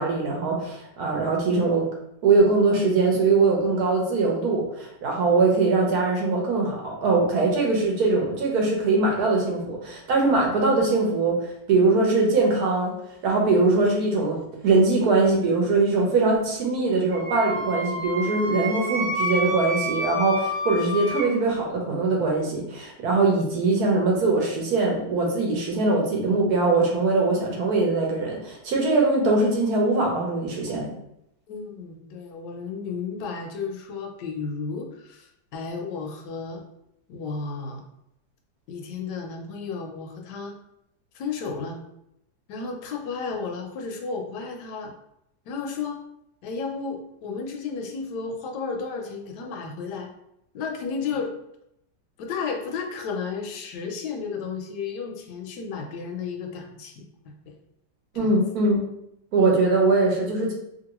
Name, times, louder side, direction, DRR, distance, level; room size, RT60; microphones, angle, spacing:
voice 1, 0.0-1.9 2.2-11.3 11.7-12.9 13.2-30.9 58.1-58.8 59.3-60.5, right 3 dB, 65° right, -1 dB, 1.1 m, -22 dB
Wind instrument woodwind instrument, 17.1-21.3, equal, 25° right, 1.2 m, -29 dB
voice 2, 31.5-36.6 37.1-37.8 38.7-40.5 41.1-41.8 42.5-44.9 45.5-46.0 46.4-50.1 50.5-51.3 52.2-57.5 58.1-58.4, left 5 dB, 80° left, 3 dB, 1.1 m, -33 dB
2.9 x 2.6 x 2.9 m, 0.79 s
omnidirectional pair, 1.8 m